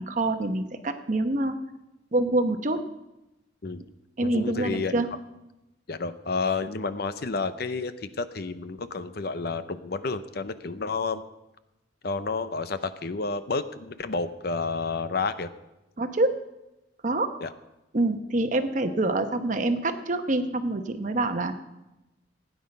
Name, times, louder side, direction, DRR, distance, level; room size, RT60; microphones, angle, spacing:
voice 1, 0.0-1.6 2.1-2.9 4.2-5.1 16.0-16.4 17.0-17.3 17.9-21.5, right 2 dB, 40° right, 8 dB, 0.9 m, -26 dB
voice 2, 4.2-5.0 5.9-11.2 12.0-15.5 17.4-17.5, left 4 dB, 55° left, 12 dB, 0.7 m, -30 dB
16.0 x 9.5 x 5.3 m, 0.95 s
head